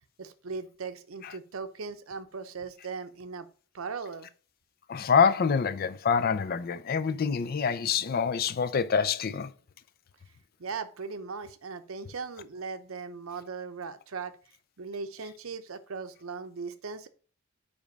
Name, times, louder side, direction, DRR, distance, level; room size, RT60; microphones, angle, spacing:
voice 1, 0.2-3.5 3.7-4.3 10.6-14.4 14.8-17.1, right 5 dB, 80° right, 0.7 m, -38 dB
voice 2, 4.9-9.5, left 6 dB, 45° left, 0.4 m, -26 dB
5.3 x 5.0 x 5.2 m
head